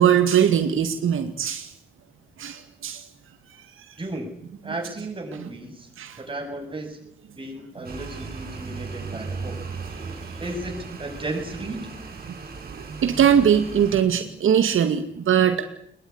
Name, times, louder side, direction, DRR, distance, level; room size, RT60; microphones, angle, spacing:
voice 1, 0.0-1.7 2.4-3.0 6.0-6.2 12.7-15.6, right 9 dB, 85° right, 7 dB, 2.3 m, -21 dB
voice 2, 4.0-4.3 4.6-5.9 6.2-7.0 7.4-9.6 10.4-11.9, right 2 dB, 25° right, 2 dB, 7.5 m, -34 dB
sound 1, 7.8-14.0, right 4 dB, 45° right, 7.2 m, -36 dB
21.5 x 21.0 x 9.8 m, 0.67 s
wide cardioid pair, 125°, 20 cm